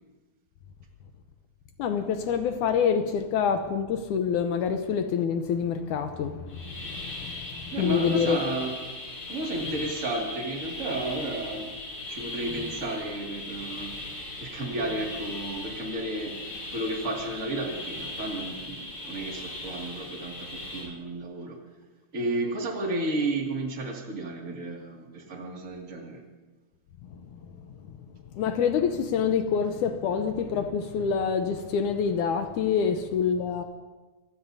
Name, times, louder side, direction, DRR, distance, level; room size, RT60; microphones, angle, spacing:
voice 1, 1.8-8.4 27.1-27.5 27.9-28.0 28.3-33.6, left 7 dB, 80° left, 7 dB, 2.2 m, -27 dB
sound 1, 6.5-20.8, left 2 dB, 50° left, 8.5 m, -38 dB
voice 2, 7.7-8.7 9.3-11.7 12.1-13.9 14.4-16.4 16.7-21.6 22.1-26.2, right 2 dB, 30° right, 0 dB, 2.2 m, -32 dB
26.5 x 19.0 x 2.7 m, 1.2 s
omnidirectional pair, 3.6 m